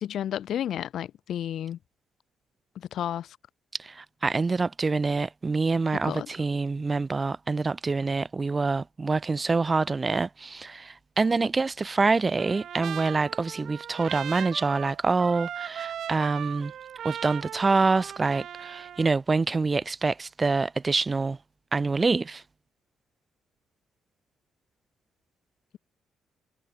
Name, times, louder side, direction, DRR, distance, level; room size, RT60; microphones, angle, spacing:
voice 1, 0.0-1.8 2.7-3.4 6.0-6.3, left 10 dB, 70° left, 1.5 m, -32 dB
voice 2, 3.8-16.7 17.0-21.4 21.7-22.4, right 4 dB, 25° right, 0.6 m, -26 dB
Trumpet, 12.4-19.1, right 9 dB, 65° right, 1.5 m, -38 dB
cardioid pair, 90°, 0 cm